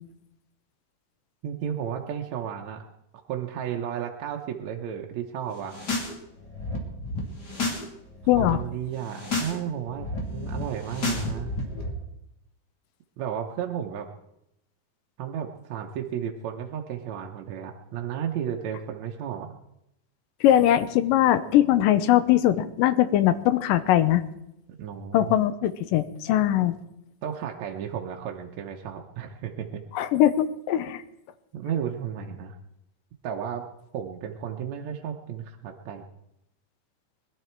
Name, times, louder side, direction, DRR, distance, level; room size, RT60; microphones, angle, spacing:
voice 1, 1.4-2.8 3.3-5.8 8.4-11.5 13.2-14.1 15.2-19.5 24.8-25.4 27.2-29.8 31.5-32.6 33.2-33.7 33.9-36.1, right 9 dB, 65° right, 1 dB, 2.0 m, -33 dB
sound 1, 5.6-6.1 6.4-7.8 8.1-8.5 9.0-9.5 9.8-11.9, left 2 dB, 30° left, 3.0 m, -31 dB
voice 2, 8.3-8.6 20.4-24.2 25.1-26.8 29.9-31.0, left 12 dB, 85° left, 13 dB, 2.5 m, -21 dB
21.5 x 12.5 x 4.6 m, 0.82 s
omnidirectional pair, 3.8 m